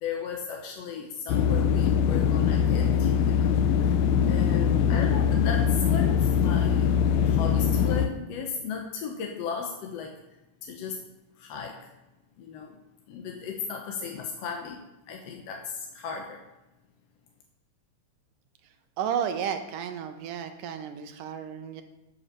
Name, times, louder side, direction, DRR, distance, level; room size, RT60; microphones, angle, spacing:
voice 1, 0.0-6.9 7.2-10.2 10.6-11.0 11.4-11.9 12.4-12.8 13.1-16.4, left 6 dB, 65° left, 1 dB, 1.7 m, -36 dB
sound 1, 1.3-8.1, left 8 dB, 85° left, 1.6 m, -22 dB
voice 2, 19.0-21.8, right 8 dB, 80° right, 7 dB, 2.4 m, -32 dB
11.5 x 5.6 x 6.7 m, 0.98 s
omnidirectional pair, 3.9 m